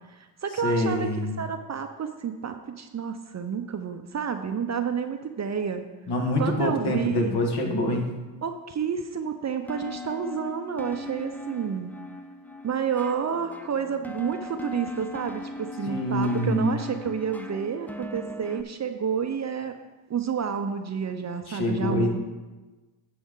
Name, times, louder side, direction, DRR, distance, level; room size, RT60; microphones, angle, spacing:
voice 1, 0.1-1.1 1.4-5.8 6.4-7.4 8.4-11.9 12.6-19.8 20.1-22.2, right 7 dB, 35° right, 7 dB, 0.7 m, -30 dB
voice 2, 0.6-1.4 6.1-8.1 15.9-16.8 21.5-22.2, left 1 dB, 50° left, 1 dB, 2.1 m, -25 dB
sound 1, 9.7-18.6, left 1 dB, 5° left, 0.6 m, -39 dB
10.0 x 6.9 x 3.8 m, 1.2 s
supercardioid pair, 70°, 49 cm